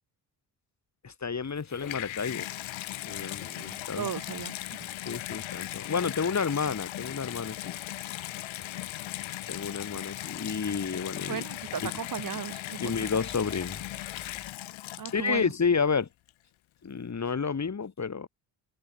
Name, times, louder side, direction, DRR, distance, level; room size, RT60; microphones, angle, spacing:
voice 1, 1.0-2.5 3.0-4.1 5.1-7.7 9.5-11.4 11.8-11.9 12.8-13.8 15.1-16.1 16.8-18.3, left 5 dB, 35° left, 3.8 m, -30 dB
Water tap faucet / Bathtub (filling or washing), 1.4-15.5 16.3-16.4, left 15 dB, 75° left, 4.6 m, -38 dB
voice 2, 3.6-4.9 11.2-13.1 15.0-15.5, right 8 dB, 40° right, 1.9 m, -37 dB
open air
supercardioid pair, 60°, 47 cm